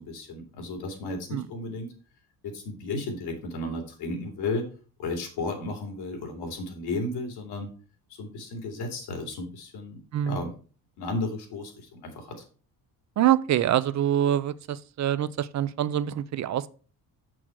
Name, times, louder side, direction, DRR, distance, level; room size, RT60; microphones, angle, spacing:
voice 1, 0.0-1.9 2.4-4.7 5.0-7.7 8.1-10.5 11.0-12.4, left 2 dB, 85° left, 2.9 m, -34 dB
voice 2, 13.2-16.7, right 11 dB, 45° right, 0.5 m, -25 dB
7.3 x 6.2 x 4.7 m
cardioid pair, 155°, 38 cm